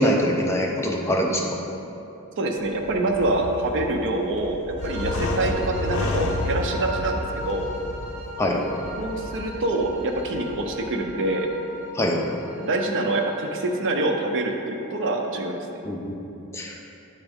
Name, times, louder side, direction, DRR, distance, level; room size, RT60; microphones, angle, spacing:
voice 1, 0.0-1.4 8.4-8.6 11.9-12.2 15.8-16.2 16.5-16.8, equal, 10° left, -1 dB, 0.6 m, -23 dB
voice 2, 2.4-7.6 9.0-11.5 12.6-15.7, right 2 dB, 55° right, 2 dB, 0.5 m, -25 dB
sound 1, 2.6-11.1, left 2 dB, 65° left, 0.5 m, -32 dB
sound 2, 4.8-13.7, equal, 30° right, 1.2 m, -37 dB
9.0 x 3.5 x 3.5 m, 2.9 s
head